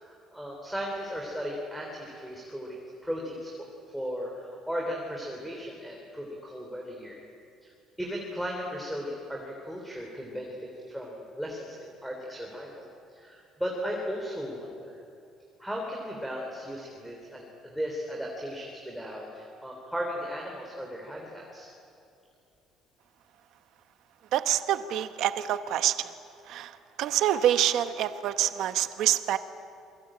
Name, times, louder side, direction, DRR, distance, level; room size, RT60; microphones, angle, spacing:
voice 1, 0.0-3.7 3.9-7.2 7.6-7.7 8.0-12.9 13.1-15.0 15.6-21.7, equal, ahead, -1 dB, 3.4 m, -36 dB
voice 2, 24.3-26.1 26.5-29.4, right 11 dB, 60° right, 10 dB, 1.1 m, -26 dB
28.5 x 23.0 x 8.9 m, 2.6 s
cardioid pair, 165°, 0 cm